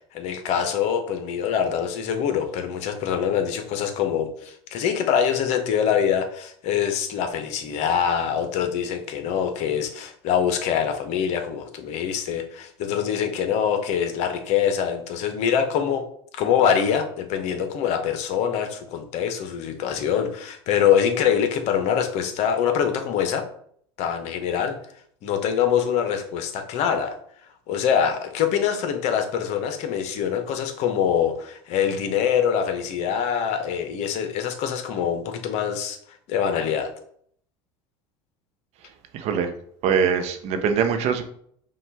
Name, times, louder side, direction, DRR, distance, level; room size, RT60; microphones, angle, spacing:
voice 1, 0.1-16.1 16.3-23.4 24.0-24.7 25.2-27.2 27.7-36.0 36.3-36.9, left 8 dB, 55° left, 7 dB, 0.8 m, -24 dB
voice 2, 39.1-39.5 39.8-41.3, right 7 dB, 55° right, 7 dB, 0.7 m, -22 dB
5.3 x 2.4 x 3.4 m, 0.64 s
hypercardioid pair, 90°, 13 cm